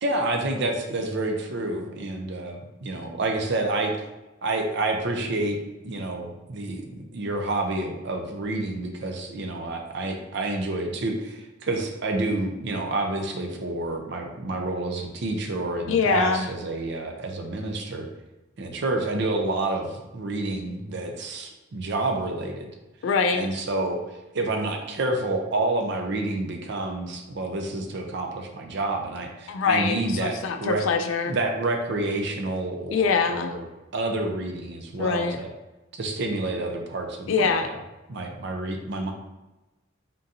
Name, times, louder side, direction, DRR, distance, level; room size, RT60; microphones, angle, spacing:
voice 1, 0.0-3.9 4.4-5.6 5.8-18.1 18.6-22.7 23.3-30.8 31.3-33.7 33.9-35.5 35.9-37.8 38.1-39.1, right 2 dB, 60° right, 3 dB, 0.6 m, -29 dB
voice 2, 15.9-16.5 23.0-23.5 29.5-31.3 32.9-33.6 35.0-35.4 37.3-37.7, left 5 dB, 75° left, 7 dB, 0.3 m, -24 dB
3.9 x 3.7 x 2.7 m, 1.0 s
head